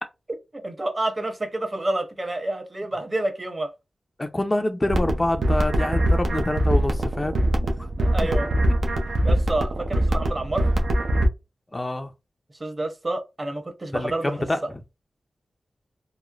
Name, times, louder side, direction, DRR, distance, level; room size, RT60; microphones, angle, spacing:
voice 1, 0.6-3.7 8.0-8.5 9.2-10.7 12.6-14.3, right 2 dB, 35° right, 0.8 m, -28 dB
voice 2, 4.2-7.5 7.8-7.9 8.2-8.3 11.7-12.1 13.9-14.8, left 1 dB, 25° left, 0.4 m, -26 dB
sound 1, 4.9-11.3, right 1 dB, 80° right, 0.5 m, -22 dB
3.0 x 2.0 x 2.4 m
cardioid pair, 55°, 0 cm